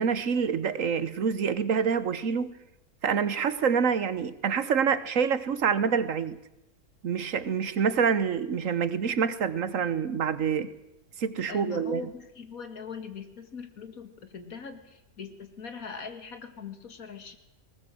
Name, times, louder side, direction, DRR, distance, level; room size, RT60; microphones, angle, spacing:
voice 1, 0.0-2.5 3.0-6.4 7.0-10.7 11.2-12.1, right 6 dB, 60° right, 1.3 m, -26 dB
voice 2, 11.5-17.4, left 6 dB, 70° left, 2.3 m, -41 dB
20.0 x 19.0 x 7.7 m
omnidirectional pair, 1.6 m